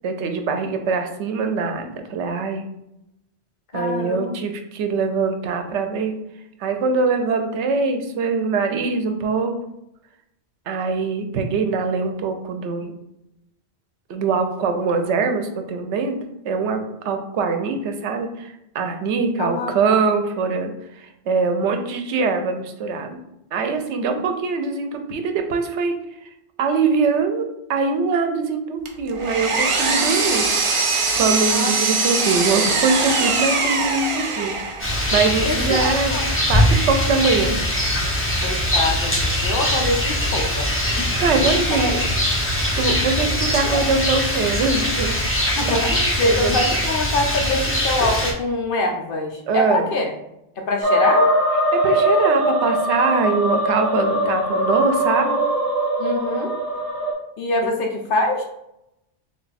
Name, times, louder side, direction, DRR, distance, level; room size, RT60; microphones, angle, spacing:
voice 1, 0.0-2.6 3.7-6.1 6.6-9.5 10.7-12.9 14.1-16.2 16.4-20.7 21.0-23.2 23.5-25.9 26.6-30.5 30.9-34.1 34.4-34.6 35.1-36.2 36.5-37.6 41.2-41.9 42.5-45.4 45.7-45.8 46.2-46.6 49.5-49.9 51.7-55.4 57.6-57.7, right 4 dB, 85° right, 6 dB, 0.9 m, -23 dB
voice 2, 3.7-4.4 19.4-20.1 31.5-31.7 35.4-36.3 38.4-40.7 41.7-41.8 43.2-43.3 45.6-50.1 50.6-51.3 56.0-56.5 57.4-58.4, left 2 dB, 60° left, 2 dB, 0.7 m, -24 dB
Power tool, 28.8-34.9, right 4 dB, 55° right, 0.3 m, -21 dB
Rain, 34.8-48.3, left 1 dB, 15° left, 0.6 m, -22 dB
sound 1, 50.8-57.1, equal, 25° right, 0.7 m, -21 dB
3.4 x 2.2 x 4.0 m, 0.84 s
omnidirectional pair, 1.1 m